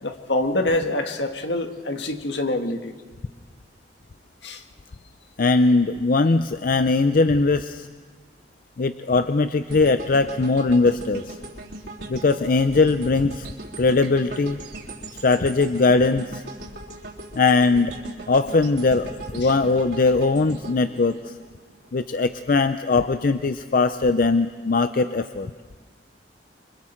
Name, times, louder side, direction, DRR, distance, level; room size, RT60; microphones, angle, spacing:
voice 1, 0.0-2.9 4.4-4.6 19.4-19.5, left 1 dB, 75° left, 5 dB, 1.7 m, -25 dB
voice 2, 5.4-7.9 8.8-11.4 12.1-13.5 13.8-14.6 15.2-16.4 17.4-17.9 18.3-21.3 21.9-25.5, left 3 dB, 50° left, 10 dB, 0.5 m, -20 dB
sound 1, 9.7-21.9 22.3-22.5, right 2 dB, 70° right, 3.7 m, -39 dB
28.5 x 25.0 x 4.5 m, 1.5 s
head